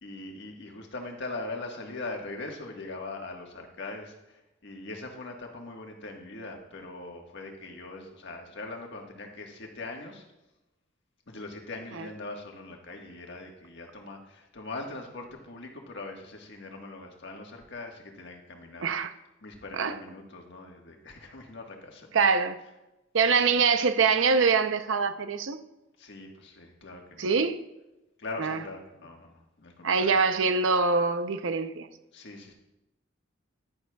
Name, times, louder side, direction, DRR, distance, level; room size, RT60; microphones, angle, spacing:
voice 1, 0.0-10.2 11.3-19.1 19.4-22.1 22.6-22.8 23.3-23.6 26.0-27.4 28.2-30.2 32.1-32.5, left 2 dB, 65° left, 1.5 m, -41 dB
voice 2, 22.1-22.6 23.1-25.6 27.2-27.6 28.4-28.6 29.8-31.9, right 5 dB, 70° right, 0.6 m, -24 dB
11.0 x 10.5 x 2.3 m
head